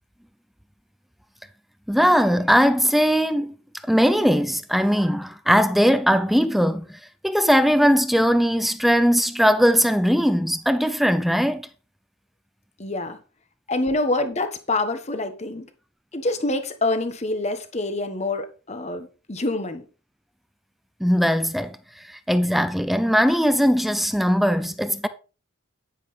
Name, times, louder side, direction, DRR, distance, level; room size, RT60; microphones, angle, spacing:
voice 1, 1.9-3.5 3.9-11.7 21.0-21.8 22.3-25.1, equal, ahead, 0.5 m, -20 dB
voice 2, 12.8-13.2 13.7-15.6 16.1-19.9, left 2 dB, 35° left, 1.3 m, -26 dB
10.0 x 9.9 x 3.3 m
head